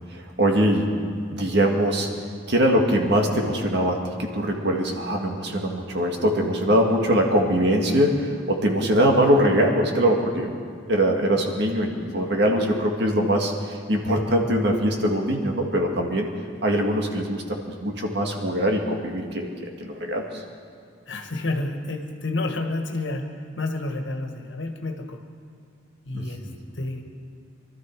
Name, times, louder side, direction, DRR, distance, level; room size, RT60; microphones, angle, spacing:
voice 1, 0.1-1.0 1.3-2.1 2.5-10.6 10.9-13.5 13.9-16.3 16.6-19.5 19.8-20.4 26.1-26.6, equal, 60° right, 1 dB, 1.9 m, -22 dB
voice 2, 21.1-25.3 26.1-26.5 26.7-27.0, left 2 dB, 70° left, 4 dB, 1.5 m, -30 dB
24.0 x 13.0 x 4.6 m, 2.2 s
head